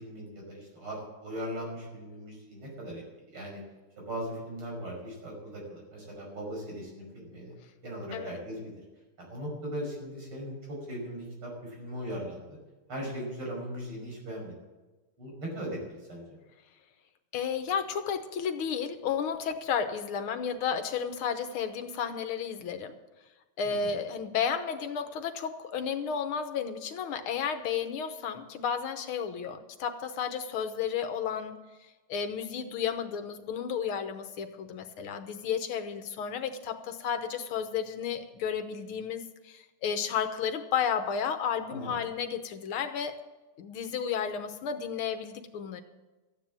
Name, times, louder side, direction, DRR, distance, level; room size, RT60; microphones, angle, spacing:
voice 1, 0.0-3.0 3.3-3.6 4.0-7.5 7.8-8.7 9.2-12.5 12.9-14.5 15.2-16.2 23.6-23.9 41.7-41.9, equal, 75° right, -1 dB, 6.4 m, -39 dB
voice 2, 17.3-22.9 23.6-31.6 32.1-43.2 43.6-45.8, left 7 dB, 80° left, 8 dB, 1.9 m, -32 dB
13.5 x 9.8 x 7.4 m, 1.2 s
omnidirectional pair, 2.4 m